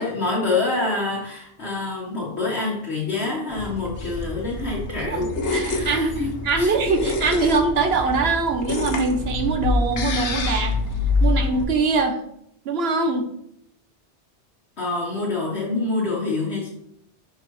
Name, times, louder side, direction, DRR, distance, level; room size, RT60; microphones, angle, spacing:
voice 1, 0.0-6.7 14.8-16.7, left 3 dB, 70° left, -4 dB, 1.6 m, -26 dB
sound 1, 3.5-11.6, left 3 dB, 85° left, 1.3 m, -26 dB
voice 2, 5.0-10.7 11.2-12.2 12.6-13.3, right 3 dB, 65° right, 6 dB, 1.0 m, -23 dB
5.9 x 4.8 x 4.6 m, 0.74 s
omnidirectional pair, 1.2 m